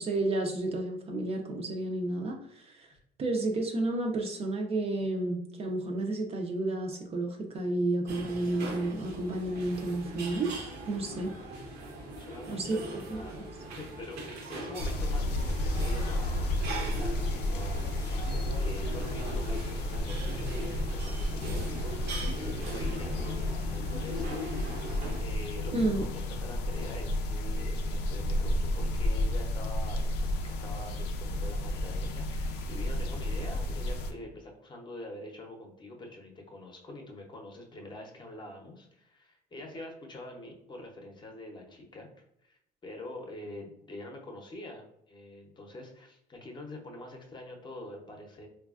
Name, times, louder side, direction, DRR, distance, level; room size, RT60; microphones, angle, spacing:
voice 1, 0.0-2.9 3.2-10.5 10.9-11.3 12.5-13.2 25.7-26.0, right 2 dB, 35° right, 2 dB, 0.5 m, -31 dB
sound 1, 8.1-25.2, right 1 dB, 75° right, 0.8 m, -40 dB
voice 2, 12.1-42.1 42.4-48.5, left 1 dB, 25° left, 1 dB, 0.7 m, -45 dB
sound 2, 14.8-34.1, left 1 dB, 90° left, 0.4 m, -32 dB
3.1 x 2.3 x 2.4 m, 0.77 s
cardioid pair, 110°, 17 cm